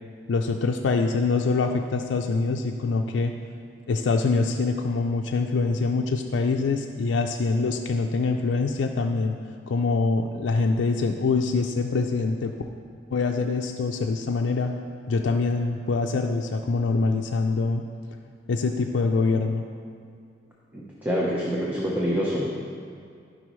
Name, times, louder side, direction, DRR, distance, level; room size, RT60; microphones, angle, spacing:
voice 1, 0.3-3.3 3.9-9.4 9.7-12.5 13.1-14.7 15.1-17.8 18.5-19.6, left 3 dB, 85° left, 3 dB, 0.4 m, -24 dB
voice 2, 20.7-22.6, equal, 10° right, -5 dB, 0.8 m, -26 dB
14.5 x 5.4 x 3.1 m, 2.3 s
head